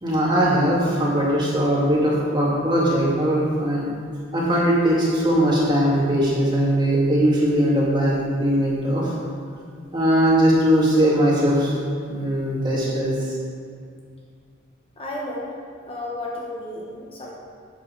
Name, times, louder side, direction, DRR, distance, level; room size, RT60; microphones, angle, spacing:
voice 1, 0.0-3.8 4.3-9.1 9.9-11.7 12.1-13.1, equal, 20° right, -5 dB, 2.4 m, -20 dB
voice 2, 15.0-15.5 15.8-17.3, left 1 dB, 30° left, -3 dB, 1.1 m, -32 dB
12.5 x 9.0 x 4.0 m, 2.2 s
head